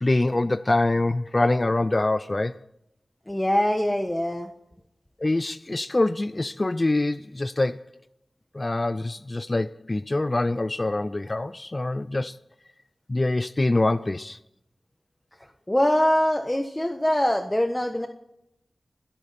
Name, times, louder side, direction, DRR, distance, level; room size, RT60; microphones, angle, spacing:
voice 1, 0.0-2.6 5.2-7.8 8.5-12.4 13.1-14.4, left 2 dB, 35° left, 0.5 m, -25 dB
voice 2, 3.3-4.5 15.7-18.1, left 1 dB, 15° left, 1.3 m, -23 dB
22.5 x 13.0 x 4.3 m
cardioid pair, 50°, 0 cm